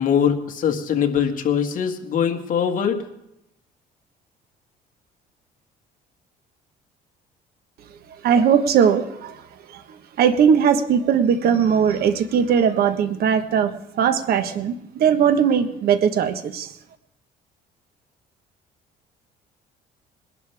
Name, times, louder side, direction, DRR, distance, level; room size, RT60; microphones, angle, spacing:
voice 1, 0.0-3.0, left 8 dB, 55° left, 3 dB, 1.9 m, -22 dB
voice 2, 8.2-9.4 9.7-13.7 14.0-16.7, right 7 dB, 65° right, 9 dB, 1.3 m, -19 dB
21.0 x 11.5 x 3.5 m, 0.83 s
cardioid pair, 110°, 17 cm